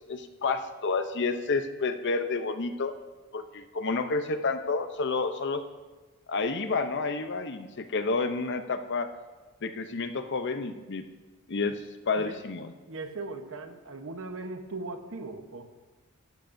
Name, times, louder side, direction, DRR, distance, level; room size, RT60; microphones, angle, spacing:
voice 1, 0.0-2.9 3.3-5.6 6.3-9.1 9.6-11.0 11.5-12.7, left 4 dB, 55° left, 9 dB, 0.7 m, -30 dB
voice 2, 12.9-15.6, right 3 dB, 65° right, 6 dB, 1.1 m, -38 dB
14.5 x 12.0 x 2.7 m, 1.2 s
head